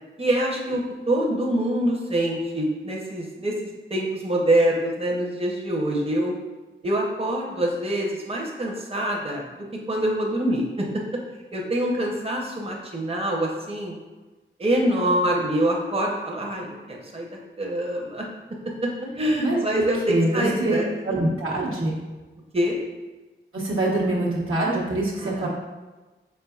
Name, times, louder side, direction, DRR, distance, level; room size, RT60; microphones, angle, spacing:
voice 1, 0.2-6.3 6.8-9.4 9.9-10.9 11.5-13.9 14.6-17.3 17.6-18.3 18.8-18.9 19.2-20.9 22.5-22.8 25.2-25.5, right 1 dB, 30° right, -1 dB, 0.7 m, -25 dB
voice 2, 20.1-20.8 21.0-22.0 23.5-25.5, right 2 dB, 80° right, -5 dB, 1.0 m, -24 dB
4.4 x 3.6 x 2.3 m, 1.2 s
cardioid pair, 40°, 21 cm